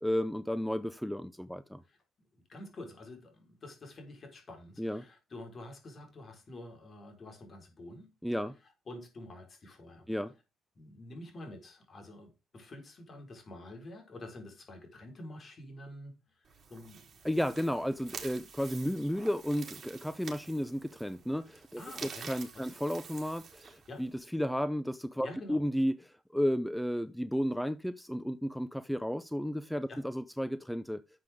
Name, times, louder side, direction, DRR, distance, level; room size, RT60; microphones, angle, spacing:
voice 1, 0.0-1.8 4.8-5.0 8.2-8.5 10.1-10.3 17.2-31.0, equal, ahead, 0.6 m, -33 dB
voice 2, 2.3-8.1 8.9-10.1 10.7-17.1 21.8-22.3 22.5-22.7 23.9-24.0 25.2-25.6 29.9-30.0, left 1 dB, 40° left, 4.6 m, -48 dB
sound 1, 16.4-24.2, right 6 dB, 45° right, 3.5 m, -48 dB
11.5 x 7.6 x 3.7 m
cardioid pair, 90°, 0 cm